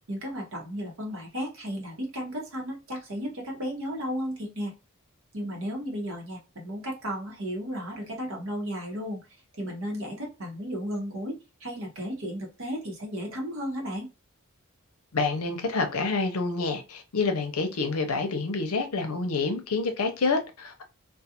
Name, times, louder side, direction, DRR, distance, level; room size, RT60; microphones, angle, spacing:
voice 1, 0.1-4.7 5.3-9.2 9.5-14.1, equal, 65° right, 0.9 m, -34 dB
voice 2, 15.1-20.8, left 3 dB, 85° left, 0.6 m, -28 dB
2.4 x 2.3 x 2.8 m
head